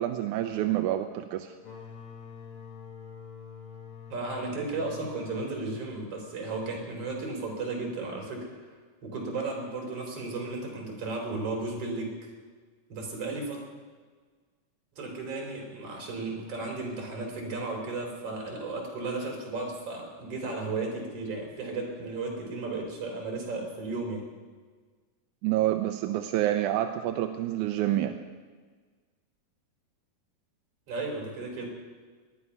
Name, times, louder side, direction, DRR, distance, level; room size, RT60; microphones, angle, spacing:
voice 1, 0.0-1.5 25.4-28.2, right 13 dB, 80° right, 7 dB, 1.9 m, -28 dB
sound 1, 1.6-7.1, left 6 dB, 75° left, 4.1 m, -46 dB
voice 2, 4.1-8.7 9.0-12.1 12.9-13.6 14.9-24.2 30.9-31.7, right 3 dB, 45° right, 0 dB, 4.4 m, -34 dB
19.0 x 11.0 x 5.6 m, 1.5 s
omnidirectional pair, 4.0 m